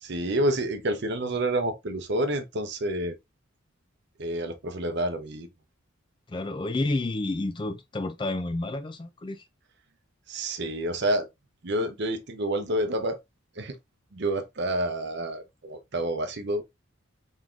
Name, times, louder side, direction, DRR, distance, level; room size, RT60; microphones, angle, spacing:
voice 1, 0.0-3.2 4.2-5.5 10.3-11.3 11.6-13.2 13.6-13.8 14.1-16.6, right 1 dB, 55° right, 0.7 m, -28 dB
voice 2, 6.3-9.5, left 2 dB, 25° left, 0.4 m, -30 dB
3.6 x 3.6 x 2.4 m
head